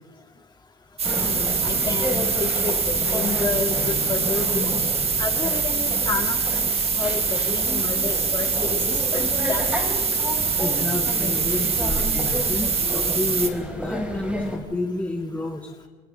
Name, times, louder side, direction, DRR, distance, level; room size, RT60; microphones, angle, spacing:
voice 1, 1.0-4.7 5.1-9.6, left 4 dB, 25° left, 3 dB, 2.7 m, -30 dB
sound 1, 1.0-14.6, equal, 5° right, 6.3 m, -31 dB
sound 2, 1.0-13.5, right 5 dB, 35° right, 2.2 m, -24 dB
voice 2, 10.6-15.7, left 2 dB, 10° left, 1 dB, 1.6 m, -30 dB
30.0 x 25.5 x 3.9 m, 1.4 s
cardioid pair, 110°, 17 cm